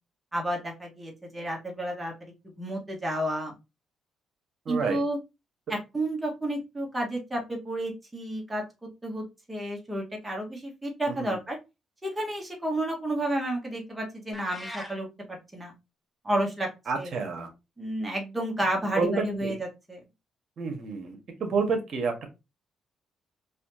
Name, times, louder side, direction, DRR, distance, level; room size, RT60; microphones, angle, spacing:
voice 1, 0.3-3.5 4.7-5.2 5.7-8.6 9.0-11.6 12.0-15.7 16.2-16.7 17.0-17.1 17.8-19.5 19.9-20.0, right 1 dB, 15° right, 0 dB, 1.5 m, -31 dB
voice 2, 4.6-5.0 11.1-11.4 16.9-17.5 18.9-19.6 20.6-22.3, right 4 dB, 60° right, 4 dB, 1.4 m, -29 dB
sound 1, 14.3-15.0, left 1 dB, 5° left, 1.2 m, -40 dB
4.2 x 2.7 x 2.8 m, 0.25 s
supercardioid pair, 70°, 0 cm